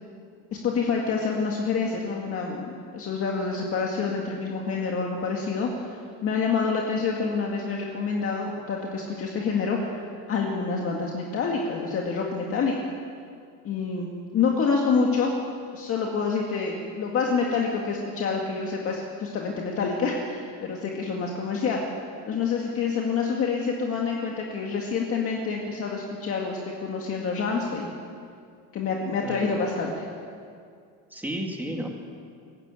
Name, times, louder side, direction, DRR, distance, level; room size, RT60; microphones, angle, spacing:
voice 1, 0.6-9.9 10.3-12.7 13.6-14.1 14.3-15.3 15.7-21.8 22.3-27.9 28.7-30.1, left 5 dB, 35° left, 0 dB, 2.0 m, -27 dB
voice 2, 29.2-29.5 31.1-31.9, equal, 5° right, 2 dB, 2.1 m, -32 dB
21.5 x 16.0 x 9.0 m, 2.3 s
cardioid pair, 175°, 38 cm